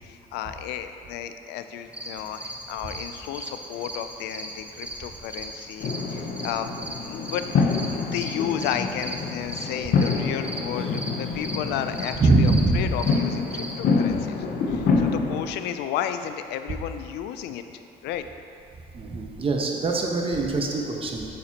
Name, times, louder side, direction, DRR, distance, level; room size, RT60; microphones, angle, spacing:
voice 1, 0.0-7.4 7.9-18.2, left 10 dB, 85° left, 9 dB, 0.4 m, -33 dB
sound 1, 1.9-13.7, right 1 dB, 10° right, 0.8 m, -38 dB
sound 2, 5.8-15.4, left 4 dB, 55° left, 0.7 m, -27 dB
voice 2, 12.2-12.8 18.9-21.3, right 2 dB, 35° right, 1 dB, 1.0 m, -22 dB
9.0 x 6.5 x 2.9 m, 2.7 s
cardioid pair, 110°, 17 cm